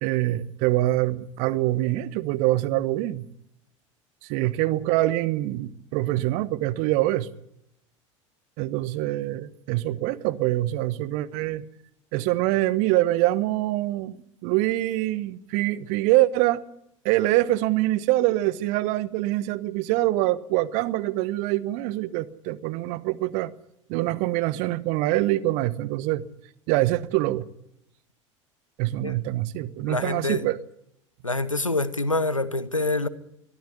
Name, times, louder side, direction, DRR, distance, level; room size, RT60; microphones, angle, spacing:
voice 1, 0.0-3.3 4.2-7.3 8.6-11.6 12.1-14.2 14.4-16.6 17.0-23.5 23.9-26.2 26.7-27.5 28.8-30.6, right 16 dB, 50° right, 1.2 m, -24 dB
voice 2, 29.8-30.5 31.2-33.1, left 2 dB, 90° left, 1.0 m, -26 dB
22.5 x 14.0 x 9.7 m
figure-of-eight pair, 75°, 16 cm